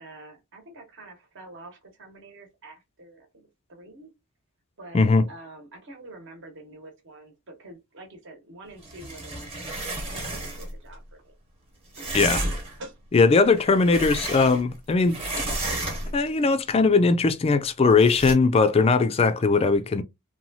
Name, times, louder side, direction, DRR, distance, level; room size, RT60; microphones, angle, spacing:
voice 1, 0.0-4.1 4.8-11.3 11.9-12.1 12.8-13.0, right 2 dB, 60° right, 1.0 m, -46 dB
voice 2, 4.9-5.3 12.1-12.4 13.1-15.2 16.1-20.0, left 4 dB, 25° left, 0.3 m, -20 dB
sound 1, 8.8-10.8 11.9-12.8 13.4-14.8 15.1-16.3 18.0-18.3, right 2 dB, 30° right, 1.0 m, -32 dB
3.0 x 2.3 x 2.6 m
head